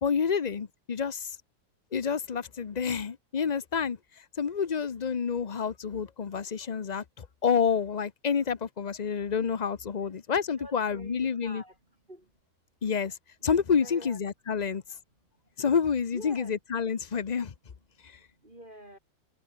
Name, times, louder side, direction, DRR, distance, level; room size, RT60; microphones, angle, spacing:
voice 1, 0.0-1.4 1.9-11.6 12.8-13.2 13.4-14.8 15.6-17.5 18.0-18.2, left 6 dB, 75° left, 0.4 m, -29 dB
voice 2, 10.3-12.4 13.8-14.2 14.6-14.8 16.1-16.5 17.9-19.0, right 1 dB, 25° right, 5.9 m, -48 dB
omnidirectional pair, 2.0 m